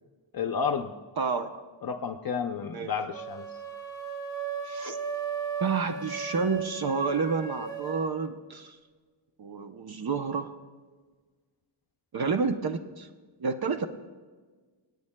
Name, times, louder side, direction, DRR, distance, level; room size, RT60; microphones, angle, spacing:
voice 1, 0.3-0.9 1.8-3.6, left 6 dB, 50° left, 5 dB, 0.6 m, -31 dB
voice 2, 1.2-1.6 2.7-2.9 4.6-5.0 5.6-8.8 9.4-10.5 12.1-13.1 13.4-13.9, right 5 dB, 50° right, 7 dB, 0.7 m, -29 dB
sound 1, 3.1-8.1, right 6 dB, 5° left, 2.0 m, -36 dB
25.5 x 9.5 x 2.2 m, 1.4 s
wide cardioid pair, 145°, 48 cm